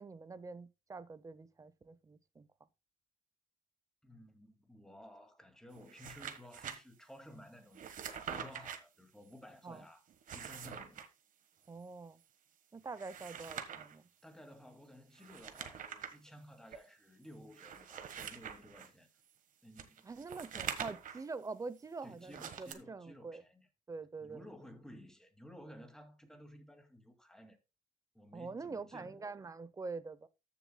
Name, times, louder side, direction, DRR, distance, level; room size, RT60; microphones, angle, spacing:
voice 1, 0.0-2.5 9.6-9.8 11.7-12.2 12.7-14.1 20.0-23.4 23.9-24.4 28.3-30.3, right 4 dB, 20° right, 0.7 m, -45 dB
voice 2, 4.0-10.0 10.3-11.0 14.2-19.1 19.6-20.1 22.0-23.7 24.2-27.6 28.1-29.4, left 1 dB, 5° left, 2.1 m, -55 dB
sound 1, 5.8-6.8 7.7-8.8 10.1-11.1 12.9-14.0 15.2-16.2 16.7-16.8 17.5-18.9 19.8-21.3 22.3-22.7, right 8 dB, 50° right, 1.4 m, -44 dB
14.0 x 6.9 x 2.2 m
cardioid pair, 110°, 17 cm